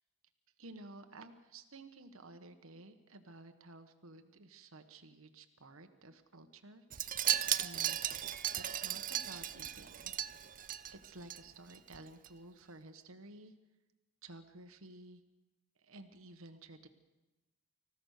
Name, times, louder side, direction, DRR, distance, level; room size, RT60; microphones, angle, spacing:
voice 1, 0.6-7.1 7.6-10.1 10.9-13.5 14.2-15.2 15.8-16.9, right 2 dB, 65° right, 7 dB, 1.3 m, -53 dB
Wind chime, 6.9-11.4 11.7-12.0 12.2-12.3, right 11 dB, 40° right, 0.6 m, -36 dB
26.0 x 15.5 x 6.6 m, 1.1 s
head